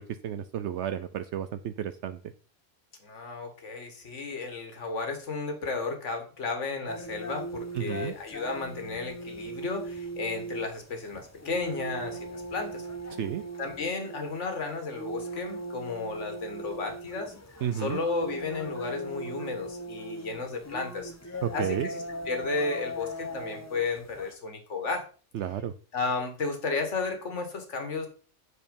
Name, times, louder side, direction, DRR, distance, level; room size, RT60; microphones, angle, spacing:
voice 1, 0.0-2.2 7.8-8.1 13.2-13.4 17.6-18.0 21.4-21.9 25.3-25.7, right 10 dB, 70° right, 11 dB, 0.8 m, -32 dB
voice 2, 3.0-12.9 13.6-25.0 25.9-28.1, left 4 dB, 70° left, 5 dB, 1.9 m, -33 dB
sound 1, 6.9-24.3, right 1 dB, 15° left, 0.7 m, -39 dB
8.1 x 4.7 x 5.3 m, 0.39 s
omnidirectional pair, 1.3 m